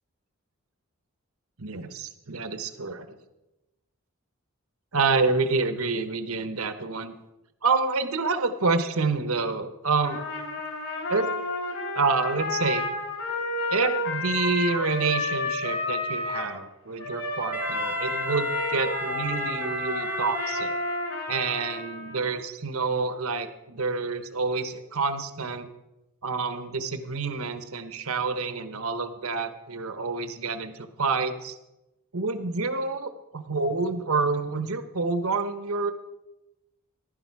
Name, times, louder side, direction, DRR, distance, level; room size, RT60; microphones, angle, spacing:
voice 1, 1.6-3.2 4.9-7.1 7.6-10.2 11.1-11.3 11.9-12.8 13.7-20.7 21.3-25.7 26.2-31.6 32.1-35.9, right 4 dB, 80° right, 10 dB, 1.1 m, -28 dB
Trumpet, 10.0-16.5 17.0-22.3, left 2 dB, 70° left, 3.5 m, -31 dB
Wind instrument woodwind instrument, 17.5-21.3, right 2 dB, 5° right, 0.7 m, -34 dB
15.5 x 11.5 x 4.8 m, 0.97 s
head